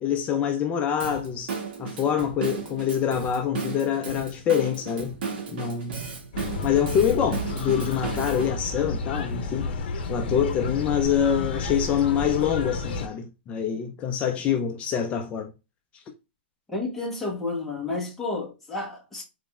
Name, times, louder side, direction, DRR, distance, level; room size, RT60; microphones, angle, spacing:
voice 1, 0.0-5.2 5.5-6.0 6.6-9.7 10.1-15.5, left 8 dB, 20° left, 0.4 m, -25 dB
Drum kit / Drum, 1.0-8.5, right 5 dB, 55° right, 1.5 m, -35 dB
sound 1, 6.3-13.1, left 3 dB, 60° left, 0.8 m, -31 dB
voice 2, 16.7-19.2, left 3 dB, 5° left, 1.0 m, -31 dB
4.0 x 3.1 x 2.3 m
hypercardioid pair, 150°, 6 cm